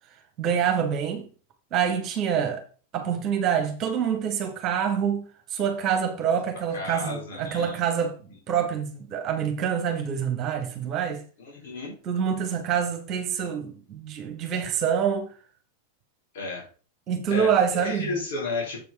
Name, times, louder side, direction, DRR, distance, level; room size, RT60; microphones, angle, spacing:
voice 1, 0.4-1.3 1.7-2.6 2.9-5.2 5.5-8.1 8.5-11.2 12.0-15.3 17.1-18.1, right 8 dB, 35° right, 1.3 m, -26 dB
voice 2, 6.7-7.8 11.4-11.9 16.3-16.7 17.3-18.8, left 3 dB, 55° left, 3.6 m, -32 dB
7.3 x 5.1 x 4.9 m
figure-of-eight pair, 90°, 0 cm